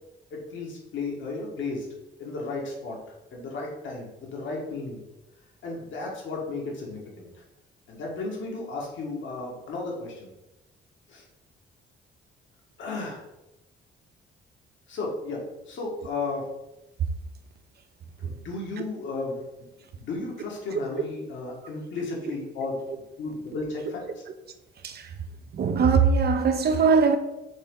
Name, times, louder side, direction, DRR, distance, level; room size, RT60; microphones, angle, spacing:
voice 1, 0.3-1.9 2.2-3.0 3.3-5.0 5.6-7.4 7.9-10.3 11.1-11.2 12.8-13.2 14.9-16.5 18.2-19.4 19.9-22.7 23.2-24.0, left 3 dB, 70° left, 1.8 m, -34 dB
voice 2, 24.8-25.2 25.5-27.2, right 5 dB, 55° right, 0.7 m, -21 dB
6.2 x 4.0 x 3.8 m
cardioid pair, 90°, 20 cm